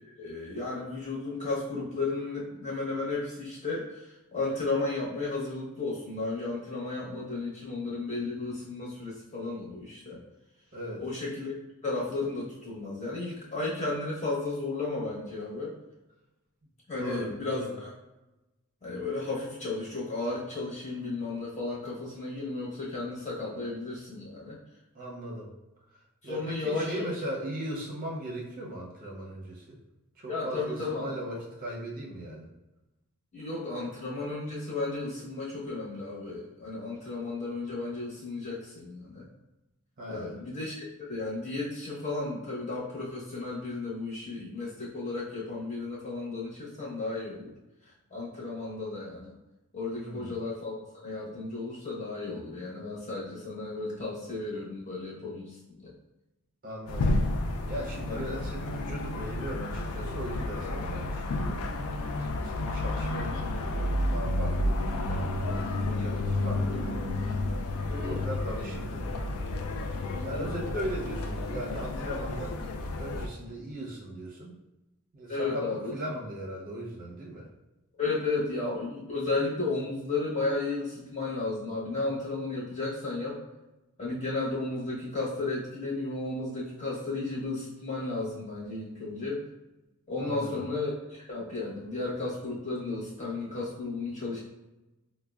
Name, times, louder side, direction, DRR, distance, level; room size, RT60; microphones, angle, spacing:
voice 1, 0.2-10.2 11.0-11.5 11.8-15.8 16.9-17.9 18.8-24.6 26.2-27.1 30.3-31.1 33.3-39.3 40.1-47.5 48.1-49.3 49.7-55.9 58.1-58.4 67.9-68.2 70.1-70.5 75.3-75.9 78.0-83.4 84.0-89.4 90.1-94.4, left 3 dB, 30° left, -6 dB, 1.0 m, -34 dB
voice 2, 10.7-11.0 17.0-17.7 24.9-25.5 26.2-29.8 30.2-32.5 40.0-40.4 50.0-50.4 56.6-57.2 57.7-61.6 62.2-63.7 64.0-67.0 67.8-69.2 70.2-72.7 73.0-74.6 75.1-77.5 90.2-90.6, right 1 dB, 40° right, -2 dB, 0.6 m, -38 dB
sound 1, 56.9-73.3, left 2 dB, 70° left, 0.4 m, -31 dB
4.5 x 2.1 x 2.3 m, 1.0 s
head